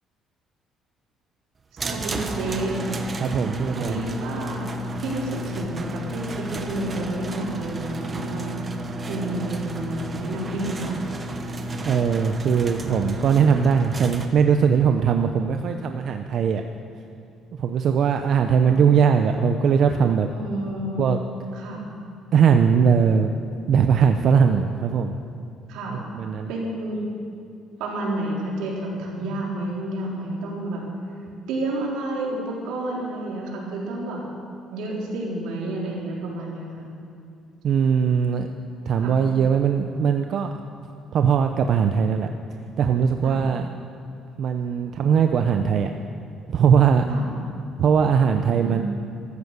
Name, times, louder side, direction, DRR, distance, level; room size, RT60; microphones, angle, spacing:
sound 1, 1.8-14.3, right 1 dB, 25° right, 1.1 m, -32 dB
voice 1, 1.8-2.9 3.8-8.5 9.0-10.9 18.6-18.8 20.2-21.2 21.5-21.8 25.7-26.0 26.5-27.0 27.8-30.8 31.5-34.2 34.7-36.9 39.0-39.1 43.2-43.4 47.1-47.2 48.5-48.8, right 1 dB, 90° right, -3 dB, 3.9 m, -30 dB
voice 2, 3.2-4.0 11.8-16.6 17.6-20.3 21.0-21.2 22.3-23.3 23.7-25.2 25.9-26.5 37.6-38.5 38.9-40.5 41.1-42.3 42.8-43.7 44.4-45.9 46.5-47.1 47.8-48.8, right 7 dB, 55° right, 6 dB, 0.6 m, -20 dB
14.5 x 13.5 x 6.7 m, 2.4 s
cardioid pair, 130°, 0 cm